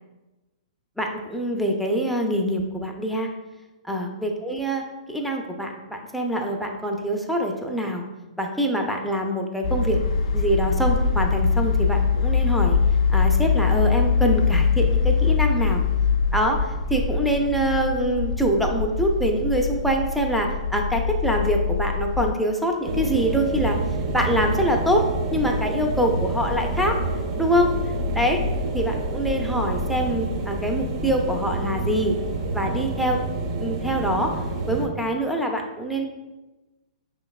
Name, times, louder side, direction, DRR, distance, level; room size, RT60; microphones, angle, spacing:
voice 1, 1.0-3.3 3.8-4.8 5.1-8.0 8.4-10.0 10.3-12.8 13.1-15.8 16.3-23.8 24.1-25.1 25.3-27.0 27.4-27.7 28.1-28.4 28.7-32.1 32.5-33.2 33.6-34.3 34.7-36.0, equal, ahead, 1 dB, 0.6 m, -24 dB
sound 1, 9.6-22.3, left 5 dB, 65° left, 0.5 m, -23 dB
sound 2, 22.8-34.9, right 1 dB, 50° right, 0.7 m, -27 dB
5.7 x 3.2 x 2.3 m, 1.1 s
hypercardioid pair, 125°, 4 cm